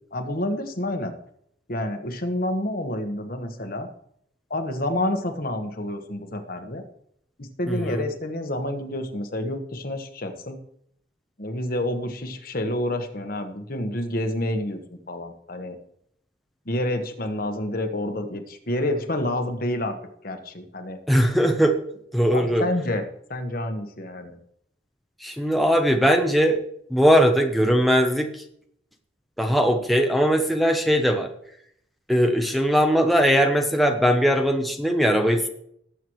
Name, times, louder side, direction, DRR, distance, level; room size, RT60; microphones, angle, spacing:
voice 1, 0.1-1.2 1.7-3.9 4.5-6.8 7.4-10.6 11.4-14.8 15.1-15.8 16.7-20.0 20.2-21.0 22.3-24.4, left 1 dB, 50° left, 6 dB, 1.3 m, -28 dB
voice 2, 7.7-8.0 21.1-21.8 22.1-22.7 25.2-26.6 26.9-28.4 29.4-31.3 32.1-35.5, equal, ahead, 3 dB, 0.8 m, -20 dB
18.5 x 8.0 x 3.1 m, 0.70 s
head